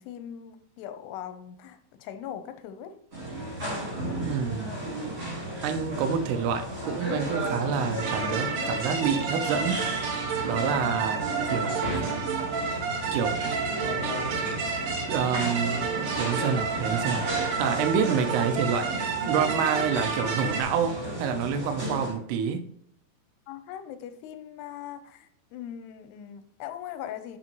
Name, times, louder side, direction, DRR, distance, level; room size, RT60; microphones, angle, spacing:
voice 1, 0.0-2.9 23.5-27.4, left 10 dB, 85° left, 2.8 m, -40 dB
sound 1, 3.1-22.1, right 1 dB, 20° right, 3.1 m, -34 dB
voice 2, 4.2-4.7 5.6-10.1 10.4-12.0 13.1-13.4 15.1-17.3 17.6-18.9 19.3-22.6, right 6 dB, 85° right, 2.8 m, -28 dB
sound 2, 8.0-20.6, right 6 dB, 70° right, 2.1 m, -31 dB
10.5 x 5.4 x 3.0 m
omnidirectional pair, 4.7 m